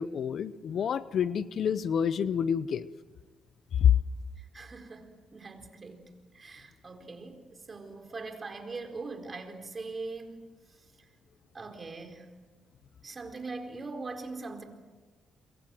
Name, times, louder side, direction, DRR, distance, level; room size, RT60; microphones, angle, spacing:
voice 1, 0.0-2.9 3.8-4.0, left 8 dB, 60° left, 16 dB, 0.8 m, -27 dB
voice 2, 4.4-10.4 10.7-11.1 11.5-12.3 13.0-14.6, right 3 dB, 30° right, 5 dB, 4.4 m, -42 dB
27.5 x 23.5 x 7.8 m, 1.3 s
cardioid pair, 90°, 0 cm